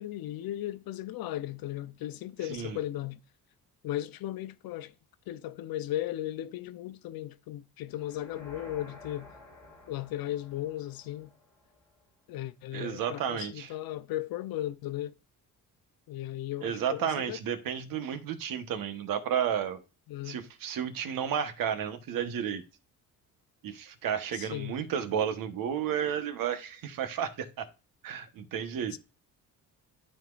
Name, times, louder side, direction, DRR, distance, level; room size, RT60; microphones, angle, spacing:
voice 1, 0.0-3.2 3.8-4.9 5.3-9.3 9.9-11.3 12.3-15.1 16.1-17.4 20.1-20.4 24.3-24.7 28.9-29.0, left 13 dB, 85° left, 0.8 m, -36 dB
sound 1, 7.9-12.0, left 2 dB, 10° left, 4.4 m, -52 dB
voice 2, 12.7-13.7 16.6-19.8 20.2-22.6 23.6-27.7 28.0-29.0, right 8 dB, 70° right, 1.2 m, -32 dB
12.5 x 4.3 x 2.5 m
cardioid pair, 140°, 35 cm